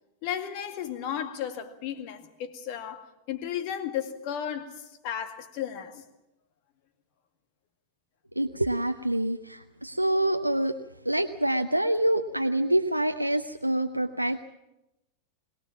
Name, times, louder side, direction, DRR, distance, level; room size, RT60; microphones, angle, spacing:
voice 1, 0.2-6.0, left 9 dB, 45° left, 2.0 m, -34 dB
voice 2, 8.4-10.8 11.0-14.4, right 1 dB, 90° right, 0.7 m, -26 dB
22.0 x 19.5 x 7.3 m
figure-of-eight pair, 90°, 0 cm